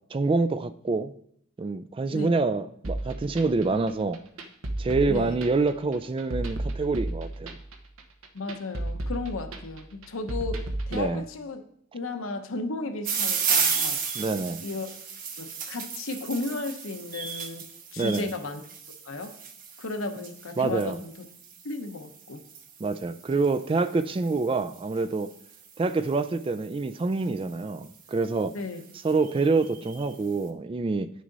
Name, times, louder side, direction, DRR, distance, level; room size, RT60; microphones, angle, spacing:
voice 1, 0.1-1.1 1.6-4.2 4.8-7.6 10.9-11.2 14.2-14.6 18.0-18.3 20.6-21.0 22.8-25.3 25.8-28.6 29.0-31.1, right 3 dB, 25° right, 12 dB, 0.3 m, -26 dB
sound 1, 2.8-11.1, right 1 dB, 75° right, 0.9 m, -34 dB
voice 2, 5.1-5.4 8.3-11.6 11.9-14.0 14.6-14.9 15.4-18.6 19.1-19.4 19.8-21.3 21.6-22.4 28.5-28.8, left 3 dB, 75° left, 6 dB, 0.9 m, -34 dB
sound 2, 13.0-26.3 27.1-27.5 28.1-28.2 28.4-28.5 28.8-30.2, right 6 dB, 40° right, 0.9 m, -34 dB
9.4 x 6.3 x 4.0 m, 0.68 s
head